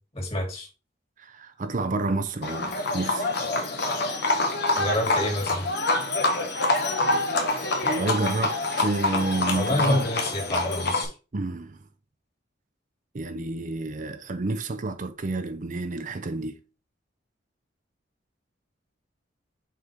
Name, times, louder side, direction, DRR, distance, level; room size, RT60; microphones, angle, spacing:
voice 1, 0.1-0.7 4.8-5.7 9.6-11.1, left 1 dB, 35° left, 2.9 m, -28 dB
voice 2, 1.2-3.3 7.1-10.0 11.3-11.8 13.1-16.6, right 2 dB, 45° right, 0.6 m, -30 dB
Livestock farm animals working animals, 2.4-11.0, left 2 dB, 65° left, 1.5 m, -26 dB
6.7 x 4.4 x 3.6 m
head